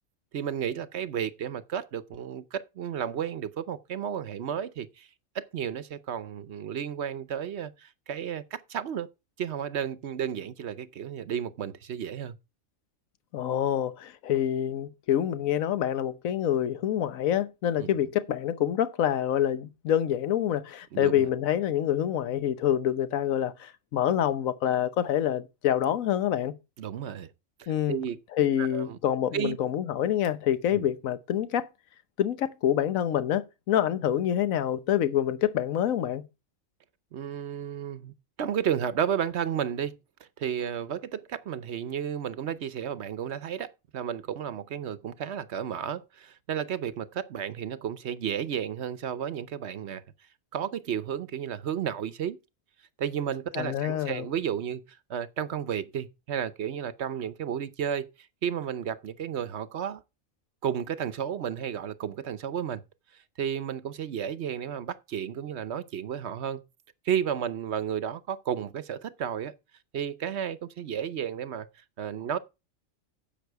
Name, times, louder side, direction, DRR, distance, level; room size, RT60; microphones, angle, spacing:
voice 1, 0.3-5.1 5.3-9.1 9.4-12.3 17.8-17.9 20.9-21.3 26.8-27.3 27.6-28.2 28.6-29.0 29.3-29.6 30.7-30.9 37.1-40.0 40.4-50.0 50.5-52.4 53.0-60.0 60.6-62.8 63.1-66.6 67.0-69.6 69.9-71.7 72.0-72.4, right 8 dB, 60° right, 0.9 m, -32 dB
voice 2, 13.3-26.5 27.7-28.0 28.3-31.7 32.2-36.2 53.6-54.3, left 10 dB, 85° left, 1.2 m, -26 dB
10.5 x 7.3 x 4.6 m
omnidirectional pair, 1.4 m